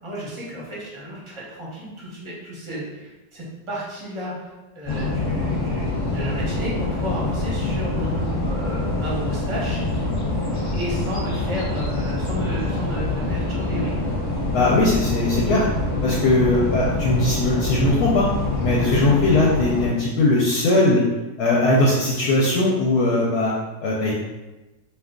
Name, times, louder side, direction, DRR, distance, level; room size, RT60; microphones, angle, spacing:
voice 1, 0.0-9.8 10.5-14.0, equal, 25° right, -6 dB, 0.6 m, -33 dB
sound 1, 4.9-19.9, left 2 dB, 35° left, 0.9 m, -25 dB
voice 2, 14.5-15.7 16.0-18.3 18.6-21.0 21.4-23.5 23.8-24.2, left 2 dB, 70° left, -4 dB, 1.0 m, -19 dB
2.7 x 2.3 x 3.6 m, 1.1 s
omnidirectional pair, 1.8 m